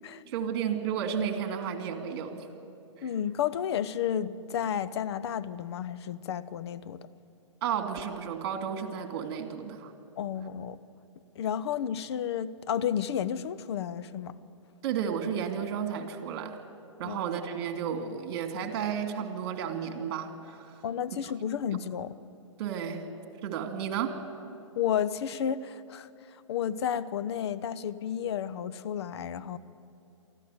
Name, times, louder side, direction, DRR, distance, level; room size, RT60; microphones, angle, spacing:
voice 1, 0.3-2.5 3.0-3.1 7.6-9.9 14.8-16.6 17.0-20.8 22.6-23.0 23.4-24.2, right 8 dB, 45° right, 6 dB, 2.5 m, -32 dB
voice 2, 3.0-7.1 10.2-10.8 11.4-14.3 17.0-17.2 20.8-22.1 24.8-29.6, left 9 dB, 55° left, 16 dB, 0.8 m, -32 dB
24.0 x 14.5 x 8.0 m, 2.7 s
hypercardioid pair, 130°, 16 cm